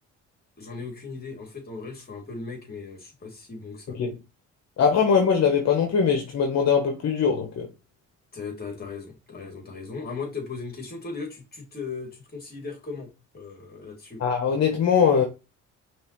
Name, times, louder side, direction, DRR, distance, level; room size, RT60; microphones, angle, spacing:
voice 1, 0.6-4.0 8.3-14.2, left 4 dB, 30° left, 2.4 m, -37 dB
voice 2, 4.8-7.7 14.2-15.2, left 6 dB, 60° left, 1.0 m, -21 dB
5.4 x 3.0 x 2.9 m
cardioid pair, 90°, 30 cm